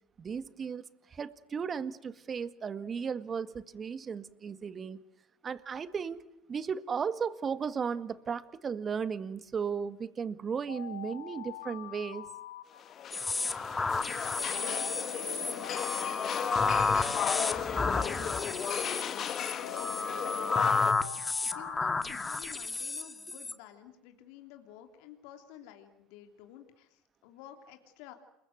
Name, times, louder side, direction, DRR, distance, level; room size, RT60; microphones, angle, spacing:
voice 1, 0.2-5.0 5.4-6.2 6.5-12.3, right 6 dB, 35° right, 12 dB, 1.9 m, -35 dB
Alarm, 10.7-13.3 14.6-18.3 19.6-22.8, left 9 dB, 90° left, 2.2 m, -45 dB
sound 1, 12.8-20.9, left 9 dB, 45° left, 2.3 m, -35 dB
sound 2, 13.1-23.5, left 3 dB, 20° left, 2.1 m, -32 dB
voice 2, 13.9-15.4 15.9-20.7 21.5-28.1, left 11 dB, 70° left, 5 dB, 3.1 m, -53 dB
29.0 x 23.0 x 7.9 m, 0.89 s
hypercardioid pair, 75°, 0 cm